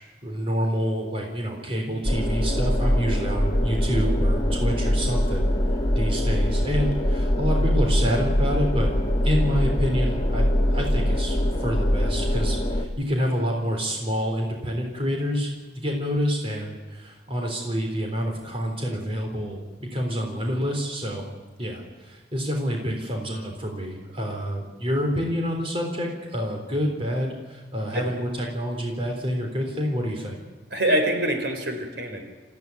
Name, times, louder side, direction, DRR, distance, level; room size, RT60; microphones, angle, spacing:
voice 1, 0.2-5.5 5.9-8.9 9.2-10.5 10.7-21.2 21.6-30.4, equal, 30° right, 1 dB, 3.8 m, -28 dB
sound 1, 2.0-12.9, equal, 25° left, 2.0 m, -23 dB
voice 2, 30.7-32.2, right 1 dB, 70° right, 5 dB, 4.3 m, -24 dB
25.0 x 15.5 x 9.6 m, 1.2 s
head